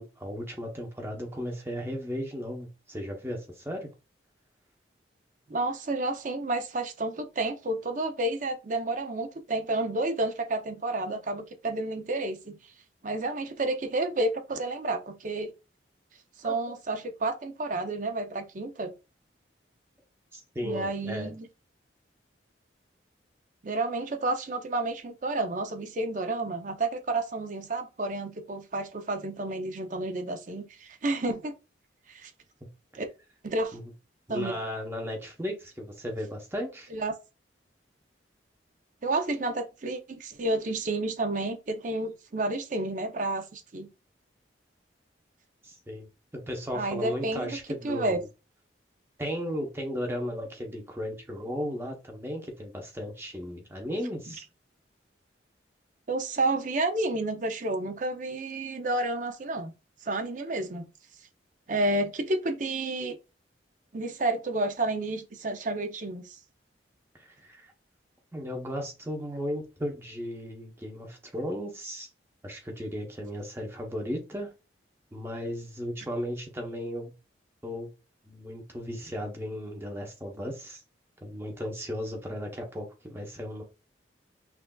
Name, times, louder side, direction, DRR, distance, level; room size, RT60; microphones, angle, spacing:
voice 1, 0.0-3.9 16.4-16.5 20.3-21.3 33.7-33.9 34.3-36.9 45.6-48.3 49.2-54.4 67.1-67.7 68.3-72.1 72.4-74.5 75.1-77.1 77.6-77.9 78.2-80.8 81.2-83.6, equal, 15° right, 0.8 m, -35 dB
voice 2, 5.5-12.6 13.0-15.5 16.4-18.9 20.6-21.5 23.6-31.5 32.1-32.3 32.9-33.1 33.4-33.8 34.3-34.6 36.9-37.1 39.0-43.9 46.7-47.6 47.8-48.2 56.1-59.7 60.0-60.9 61.7-63.2 63.9-66.4, right 2 dB, 45° right, 0.6 m, -30 dB
5.8 x 2.5 x 2.3 m
head